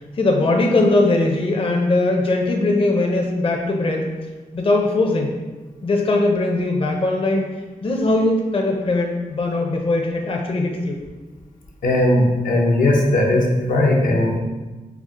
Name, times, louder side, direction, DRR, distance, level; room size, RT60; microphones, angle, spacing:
voice 1, 0.2-4.1 4.5-5.3 5.8-7.5 7.8-11.0, left 2 dB, 40° left, 1 dB, 0.5 m, -20 dB
voice 2, 11.8-14.4, left 1 dB, 80° left, -1 dB, 0.7 m, -18 dB
4.6 x 2.0 x 3.6 m, 1.2 s
cardioid pair, 70°, 14 cm